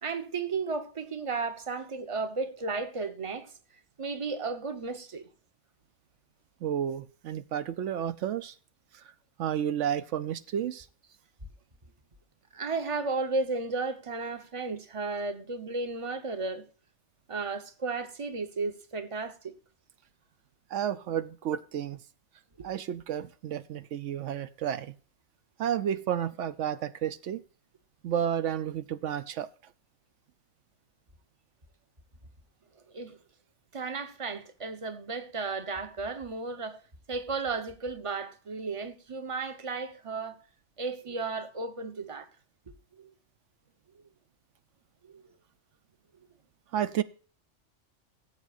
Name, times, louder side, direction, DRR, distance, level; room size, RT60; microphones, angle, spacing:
voice 1, 0.0-3.5 4.0-5.3 12.5-16.6 17.3-19.5 22.6-22.7 32.9-33.2 33.7-36.8 37.1-40.4 40.8-42.3 43.0-43.1 45.1-45.3, right 4 dB, 30° right, 1.0 m, -34 dB
voice 2, 6.6-8.5 8.9-9.0 9.4-10.9 20.7-22.0 22.6-24.9 25.6-27.4 28.0-29.5 46.7-47.0, right 9 dB, 80° right, 1.0 m, -31 dB
18.5 x 8.1 x 2.5 m
omnidirectional pair, 1.2 m